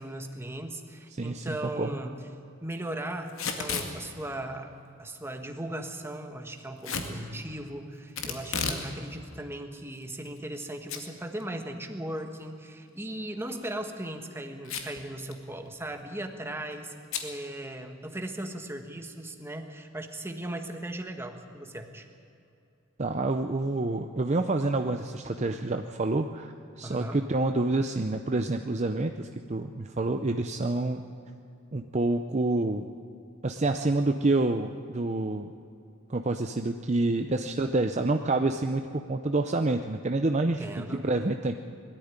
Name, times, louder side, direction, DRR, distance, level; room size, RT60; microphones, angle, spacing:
voice 1, 0.0-2.2 2.6-4.7 5.0-16.9 17.2-22.1 26.8-27.2 40.5-41.1, right 1 dB, 10° right, 4 dB, 1.5 m, -38 dB
voice 2, 1.2-1.9 23.0-31.0 31.7-32.9 33.4-35.5 36.1-40.7 40.9-41.7, right 2 dB, 35° right, 6 dB, 0.6 m, -28 dB
Packing tape duct tape / Tearing, 3.3-3.9 6.8-7.1 8.2-8.9 9.2-9.3 10.0-10.6 10.9-11.0 11.4-11.5 13.5-13.7 14.6-15.0 15.3-15.4 15.7-16.0 17.1-17.3, left 5 dB, 80° left, 2.1 m, -32 dB
21.0 x 13.5 x 9.6 m, 2.7 s
head